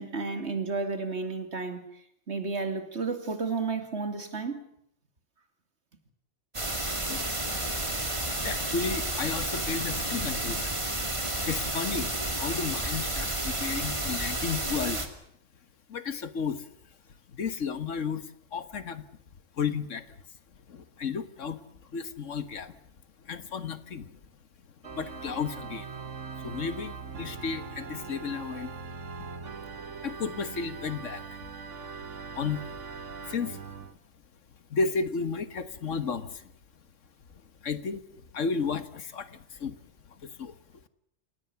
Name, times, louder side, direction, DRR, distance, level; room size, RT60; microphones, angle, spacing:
voice 1, 0.0-1.8 2.3-4.6, right 4 dB, 65° right, 7 dB, 3.1 m, -32 dB
sound 1, 6.5-15.1, right 1 dB, 25° right, 2.7 m, -31 dB
voice 2, 8.4-10.7 11.1-15.1 15.9-16.7 17.3-19.1 19.6-20.2 20.7-21.6 21.9-22.8 23.2-24.2 24.9-25.9 26.4-28.7 30.0-31.2 32.4-32.7 33.3-33.6 34.7-36.5 37.6-39.8 40.1-40.6, left 5 dB, 90° left, 12 dB, 1.7 m, -33 dB
Organ, 24.8-33.9, right 5 dB, 80° right, 1.9 m, -41 dB
29.5 x 18.5 x 7.1 m, 0.70 s
omnidirectional pair, 1.2 m